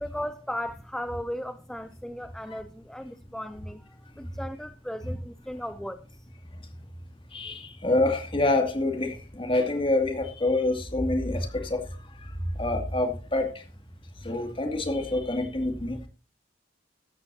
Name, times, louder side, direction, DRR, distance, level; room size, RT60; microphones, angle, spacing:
voice 1, 0.0-6.3, equal, 5° left, 0.5 m, -36 dB
voice 2, 7.3-11.8 12.6-13.5 14.2-16.0, left 2 dB, 30° left, 2.4 m, -26 dB
15.0 x 12.5 x 2.8 m
head